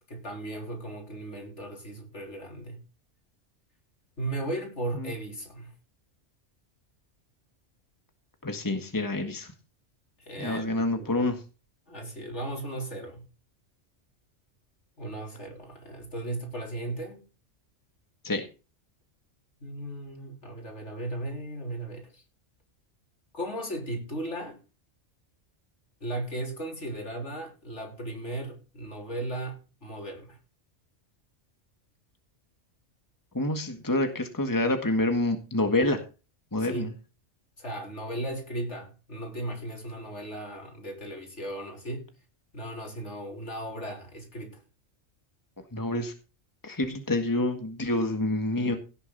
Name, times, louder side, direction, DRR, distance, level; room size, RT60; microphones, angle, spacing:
voice 1, 0.1-2.8 4.2-5.7 10.3-11.3 11.9-13.3 15.0-17.2 19.6-22.2 23.3-24.6 26.0-30.4 36.6-36.9 37.6-42.1 42.5-44.6, right 1 dB, 65° left, 4.2 m, -36 dB
voice 2, 8.4-9.5 10.4-11.4 18.2-18.5 33.3-36.0 36.5-36.9 45.7-46.1 46.6-48.8, left 2 dB, 15° left, 1.8 m, -27 dB
17.5 x 7.0 x 4.1 m
omnidirectional pair, 1.3 m